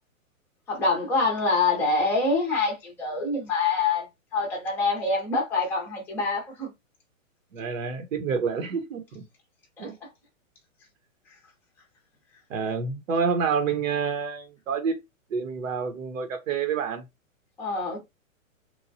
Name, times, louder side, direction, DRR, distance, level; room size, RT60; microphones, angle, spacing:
voice 1, 0.7-4.1 4.3-6.7 9.8-9.9 17.6-18.0, left 3 dB, 5° left, 0.6 m, -25 dB
voice 2, 7.5-9.2 9.8-9.9 12.5-15.0 15.3-17.1, right 6 dB, 70° right, 0.9 m, -28 dB
3.1 x 2.2 x 2.6 m
hypercardioid pair, 145°, 40 cm